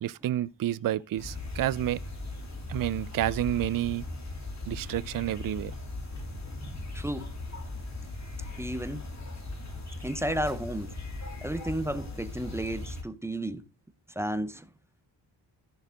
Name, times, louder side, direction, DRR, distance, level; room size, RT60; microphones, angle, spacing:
voice 1, 0.0-2.0 2.7-4.1 4.7-5.7, right 13 dB, 50° right, 0.5 m, -29 dB
sound 1, 1.2-13.0, left 2 dB, 35° left, 3.1 m, -38 dB
voice 2, 6.6-7.3 8.6-9.0 10.0-10.9 11.4-13.6 14.2-14.6, right 1 dB, 5° right, 0.6 m, -33 dB
13.5 x 7.2 x 3.7 m
wide cardioid pair, 125°, 46 cm